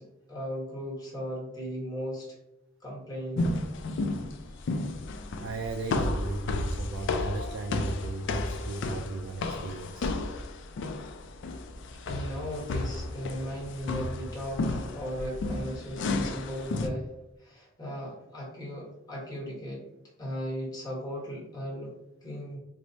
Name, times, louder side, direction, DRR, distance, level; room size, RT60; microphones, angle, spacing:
voice 1, 0.0-2.4 2.8-3.5 11.9-19.9 20.2-22.6, equal, 20° left, -4 dB, 1.1 m, -37 dB
sound 1, 3.4-16.9, left 2 dB, 60° left, 0.3 m, -32 dB
voice 2, 4.3-4.7 5.4-10.1, right 3 dB, 65° right, 4 dB, 0.3 m, -36 dB
4.6 x 2.0 x 2.6 m, 0.89 s
head